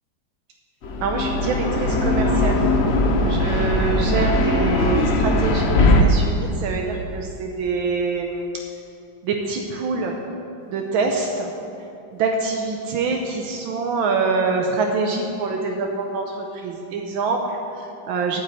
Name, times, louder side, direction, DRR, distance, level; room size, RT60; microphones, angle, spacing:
sound 1, 0.8-6.0, left 1 dB, 50° left, 0.8 m, -19 dB
voice 1, 1.0-2.7 3.2-8.6 9.2-10.2 10.6-11.5 12.2-18.4, right 4 dB, 80° right, 2 dB, 1.6 m, -25 dB
9.1 x 8.7 x 7.8 m, 2.8 s
omnidirectional pair, 2.2 m